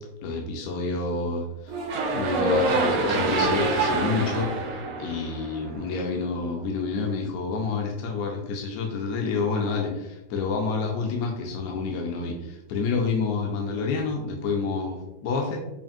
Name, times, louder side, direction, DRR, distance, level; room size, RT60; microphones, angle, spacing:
voice 1, 0.2-1.8 2.1-15.6, left 4 dB, 70° left, 1 dB, 1.0 m, -28 dB
sound 1, 1.7-5.9, right 2 dB, 70° right, 1.0 m, -25 dB
5.2 x 2.5 x 2.4 m, 0.97 s
omnidirectional pair, 1.6 m